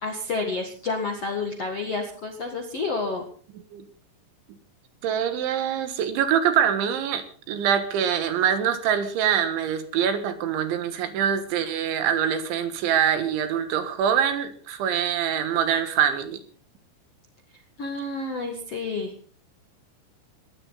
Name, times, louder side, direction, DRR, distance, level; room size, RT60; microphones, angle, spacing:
voice 1, 0.0-3.2 17.8-19.1, left 3 dB, 55° left, 3 dB, 1.7 m, -29 dB
voice 2, 5.0-16.4, right 8 dB, 70° right, 9 dB, 3.6 m, -24 dB
21.0 x 16.0 x 4.1 m, 0.43 s
omnidirectional pair, 5.9 m